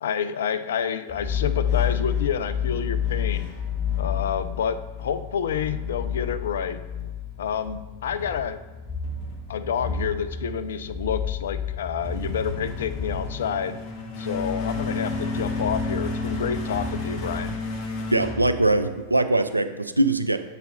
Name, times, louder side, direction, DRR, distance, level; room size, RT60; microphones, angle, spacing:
voice 1, 0.0-3.5 4.0-6.8 7.4-8.6 9.5-13.8 14.2-17.6, left 7 dB, 60° left, 12 dB, 0.3 m, -29 dB
sound 1, 1.1-19.2, left 5 dB, 40° left, 0.9 m, -30 dB
voice 2, 18.1-20.4, right 2 dB, 85° right, 9 dB, 0.3 m, -22 dB
7.0 x 4.1 x 3.8 m, 1.2 s
figure-of-eight pair, 90°, 0 cm